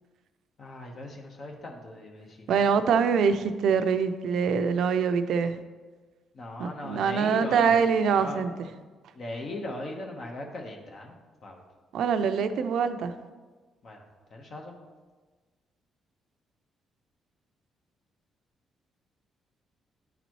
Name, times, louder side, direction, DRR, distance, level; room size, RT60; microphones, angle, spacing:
voice 1, 0.6-2.7 6.3-7.8 8.2-8.4 9.1-11.1 11.4-11.6 13.8-14.0 14.3-14.8, left 2 dB, 50° left, 1 dB, 1.0 m, -38 dB
voice 2, 2.5-5.6 6.6-8.7 11.9-13.1, right 6 dB, 75° right, 10 dB, 0.4 m, -24 dB
10.5 x 4.0 x 3.0 m, 1.4 s
cardioid pair, 90°, 0 cm